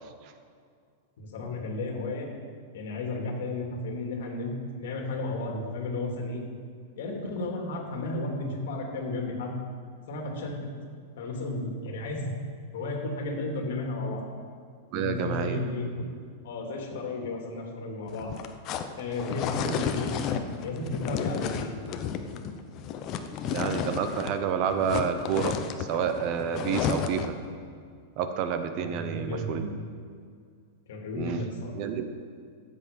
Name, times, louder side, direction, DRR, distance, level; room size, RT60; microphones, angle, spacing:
voice 1, 1.2-2.3 2.7-6.4 7.0-9.6 10.1-10.7 11.2-12.3 12.7-14.2 14.9-15.9 16.4-18.4 19.0-20.2 20.6-21.8 28.8-29.6 30.9-31.7, left 2 dB, 65° left, 1 dB, 2.7 m, -33 dB
voice 2, 14.9-15.6 19.6-19.8 23.5-27.4 28.2-29.8 31.1-31.4 31.7-32.1, right 7 dB, 35° right, 8 dB, 0.8 m, -29 dB
sound 1, 18.1-24.4 24.7-27.4, left 8 dB, 30° left, 0.6 m, -32 dB
14.0 x 8.2 x 5.3 m, 2.2 s
supercardioid pair, 170°, 0 cm